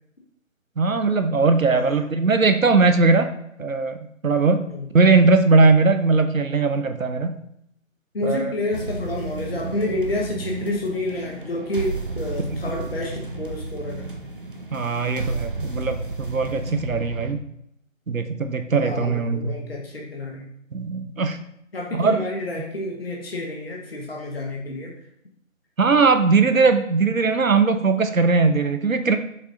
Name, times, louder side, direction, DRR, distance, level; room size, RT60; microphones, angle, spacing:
voice 1, 0.8-3.3 3.6-4.0 4.2-4.7 4.9-7.3 8.2-8.5 12.5-12.6 14.7-17.4 18.1-19.6 20.7-21.4 21.9-22.2 25.8-29.2, right 4 dB, 75° right, 8 dB, 0.8 m, -19 dB
voice 2, 1.7-2.0 4.7-4.9 8.1-14.1 18.7-20.5 21.7-24.9, left 2 dB, 45° left, -1 dB, 1.1 m, -29 dB
sound 1, 8.7-17.3, right 2 dB, 40° right, 0.6 m, -32 dB
7.0 x 5.5 x 2.5 m, 0.74 s
figure-of-eight pair, 155°, 40 cm